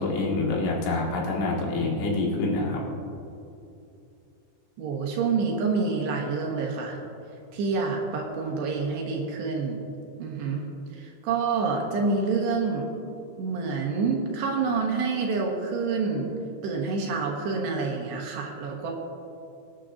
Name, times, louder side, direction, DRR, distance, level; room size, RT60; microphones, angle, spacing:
voice 1, 0.0-2.8, left 2 dB, 85° left, -3 dB, 4.4 m, -26 dB
voice 2, 4.8-7.0 7.5-9.8 10.2-10.6 10.9-12.9 13.4-16.3 16.6-18.9, right 4 dB, 70° right, 0 dB, 3.1 m, -27 dB
23.5 x 10.0 x 2.6 m, 2.7 s
omnidirectional pair, 5.5 m